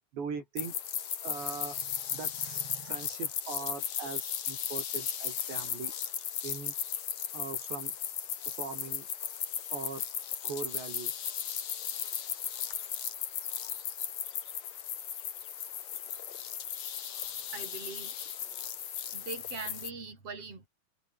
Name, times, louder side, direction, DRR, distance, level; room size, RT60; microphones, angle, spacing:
voice 1, 0.1-0.8 1.2-5.9 6.4-6.7 7.3-7.9 8.5-9.1 9.7-10.1 10.4-11.1, right 5 dB, 65° right, 7.5 m, -41 dB
sound 1, 0.6-19.9, left 9 dB, 50° left, 2.5 m, -36 dB
voice 2, 17.2-18.2 19.1-20.7, right 4 dB, 30° right, 7.5 m, -42 dB
omnidirectional pair, 5.5 m